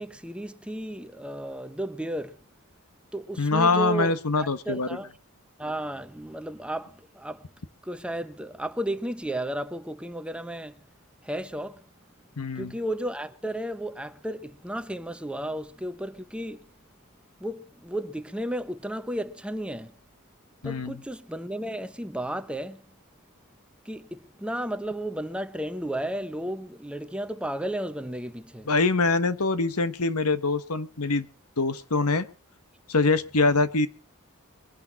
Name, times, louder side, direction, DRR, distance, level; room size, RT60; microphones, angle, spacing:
voice 1, 0.0-2.4 3.1-5.1 5.6-7.4 7.8-10.8 11.2-11.8 12.5-16.6 17.4-19.9 20.6-22.9 23.8-28.7, right 1 dB, 5° right, 0.9 m, -33 dB
voice 2, 3.4-4.9 12.4-12.7 20.6-21.0 28.7-31.3 31.6-32.3 32.9-33.9, left 3 dB, 80° left, 1.3 m, -24 dB
23.5 x 11.0 x 4.1 m
head